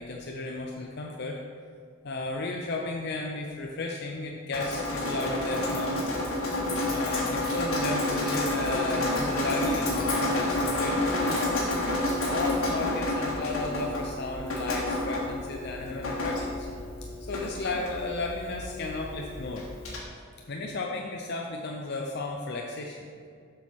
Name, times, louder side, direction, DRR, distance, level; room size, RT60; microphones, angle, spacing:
voice 1, 0.0-1.4 2.0-6.1 6.9-11.7 12.2-16.7 17.2-19.6 20.5-23.1, left 2 dB, 50° left, 0 dB, 0.6 m, -34 dB
Drip, 4.5-20.0, left 1 dB, 85° left, 1.8 m, -29 dB
7.3 x 6.3 x 4.3 m, 2.2 s
head